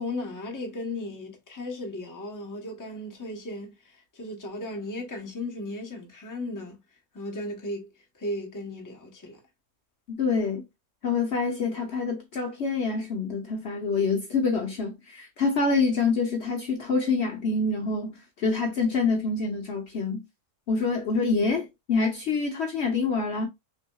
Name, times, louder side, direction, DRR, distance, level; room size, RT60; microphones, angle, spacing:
voice 1, 0.0-6.8 7.1-9.4, left 1 dB, 15° left, 0.8 m, -36 dB
voice 2, 10.1-10.6 11.0-20.2 20.7-23.5, left 4 dB, 55° left, 0.9 m, -26 dB
5.7 x 2.7 x 2.3 m
omnidirectional pair, 1.5 m